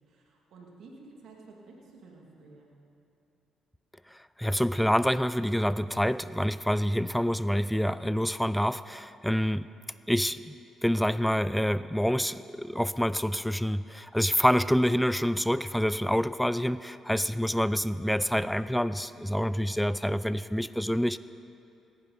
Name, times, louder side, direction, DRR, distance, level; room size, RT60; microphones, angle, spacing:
voice 1, 0.1-2.7, right 3 dB, 70° right, -1 dB, 2.3 m, -52 dB
voice 2, 4.1-9.7 10.1-10.5 10.8-21.2, equal, 5° left, 14 dB, 0.3 m, -27 dB
17.5 x 11.0 x 4.0 m, 2.8 s
supercardioid pair, 60°, 0 cm